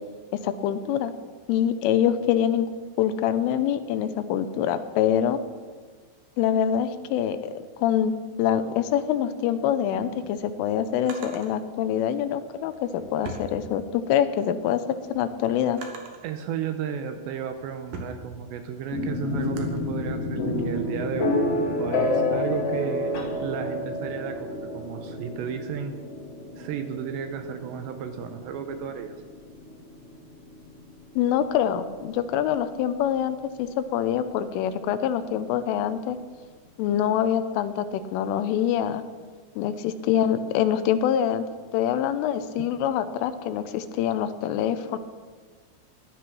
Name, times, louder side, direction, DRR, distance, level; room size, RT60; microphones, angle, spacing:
voice 1, 0.3-1.1 1.5-2.7 3.0-5.4 6.4-14.8 15.1-15.8 31.2-36.2 36.8-39.0 39.6-41.4 41.7-45.0, left 9 dB, 80° left, 11 dB, 3.2 m, -25 dB
Drawer open or close, 9.9-11.5 12.5-14.2 14.6-16.3 17.0-19.8, right 3 dB, 60° right, 2.5 m, -43 dB
voice 2, 16.2-21.4 21.8-26.0 26.6-29.2, right 7 dB, 80° right, 7 dB, 2.6 m, -33 dB
sound 1, 18.9-32.7, left 1 dB, 50° left, 1.9 m, -30 dB
16.0 x 11.0 x 6.1 m, 1.5 s
omnidirectional pair, 5.9 m